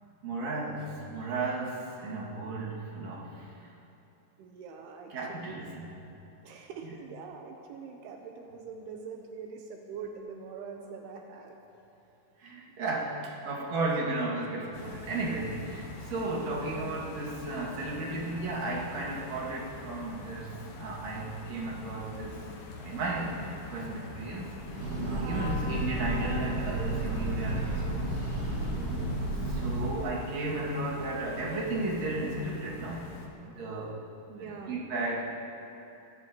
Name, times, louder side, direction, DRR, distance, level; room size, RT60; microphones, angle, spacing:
voice 1, 0.2-3.7 5.1-6.0 12.4-22.3 22.8-24.6 25.0-28.9 29.5-33.1 33.6-34.0 34.4-35.2, right 2 dB, 45° right, -4 dB, 2.5 m, -34 dB
voice 2, 4.4-5.9 6.4-11.6 12.7-13.0 13.6-13.7 16.2-16.5 25.2-25.5 28.7-29.4 29.9-30.2 33.5-33.6 34.3-34.8, right 5 dB, 90° right, 2 dB, 2.2 m, -44 dB
sound 1, 14.7-33.3, left 3 dB, 65° left, 2.4 m, -44 dB
Breathing / Train, 24.6-30.1, right 1 dB, 65° right, 1.5 m, -32 dB
24.0 x 15.5 x 3.0 m, 2.9 s
omnidirectional pair, 5.8 m